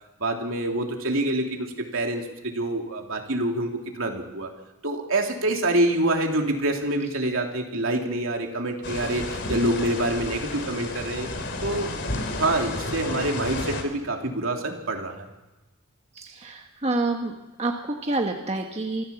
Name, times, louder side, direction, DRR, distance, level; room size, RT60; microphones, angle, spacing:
voice 1, 0.2-4.5 4.8-11.3 11.6-11.9 12.4-15.3, right 1 dB, 70° right, 2 dB, 3.1 m, -26 dB
sound 1, 8.8-13.8, left 2 dB, 55° left, 2.9 m, -32 dB
voice 2, 16.1-17.3 17.6-19.0, right 2 dB, 30° right, 3 dB, 1.4 m, -28 dB
25.0 x 15.0 x 7.2 m, 1.0 s
head